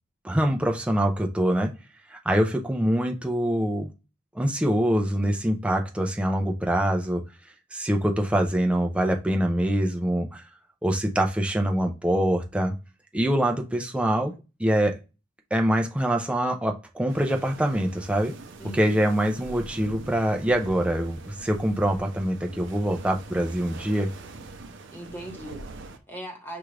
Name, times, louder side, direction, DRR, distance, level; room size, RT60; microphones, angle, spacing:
voice 1, 0.2-1.7 2.1-3.9 4.3-7.2 7.7-10.4 10.8-12.7 13.1-14.3 14.6-15.0 15.5-18.3 18.7-24.1, right 1 dB, 5° right, 2 dB, 0.5 m, -24 dB
sound 1, 17.1-26.0, right 3 dB, 65° right, 0.6 m, -43 dB
voice 2, 18.6-19.1 24.9-26.6, right 1 dB, 10° left, 2 dB, 1.1 m, -40 dB
5.9 x 2.4 x 3.2 m, 0.30 s
head